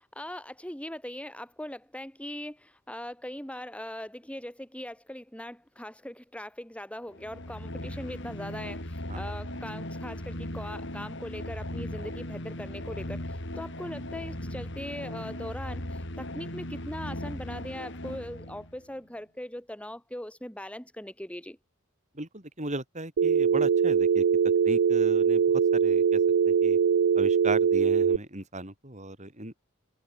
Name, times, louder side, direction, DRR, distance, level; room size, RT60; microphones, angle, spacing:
voice 1, 0.0-21.6, left 1 dB, 5° left, 7.8 m, -40 dB
sound 1, 7.1-18.8, left 1 dB, 60° left, 5.8 m, -38 dB
voice 2, 22.1-24.2 24.6-25.4 25.7-26.2 26.5-26.8 27.1-29.5, right 2 dB, 35° right, 8.0 m, -36 dB
Telephone, 23.2-28.2, right 7 dB, 85° right, 0.4 m, -22 dB
head